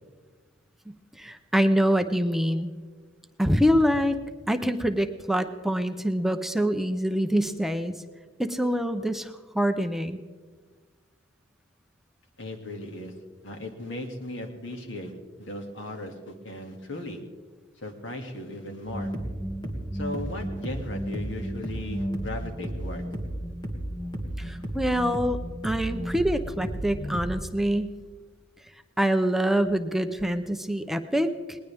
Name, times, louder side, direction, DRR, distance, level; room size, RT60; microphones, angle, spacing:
voice 1, 1.2-2.7 3.4-4.2 4.5-7.9 8.4-10.2 24.4-25.4 25.6-27.9 29.0-31.6, equal, ahead, 8 dB, 0.6 m, -25 dB
voice 2, 12.4-13.1 13.4-15.1 15.4-17.2 17.8-19.1 19.9-23.1 24.4-24.5, left 1 dB, 80° left, 4 dB, 2.3 m, -37 dB
sound 1, 18.9-27.4, right 1 dB, 25° left, 2.2 m, -33 dB
20.0 x 19.5 x 3.5 m, 1.4 s
head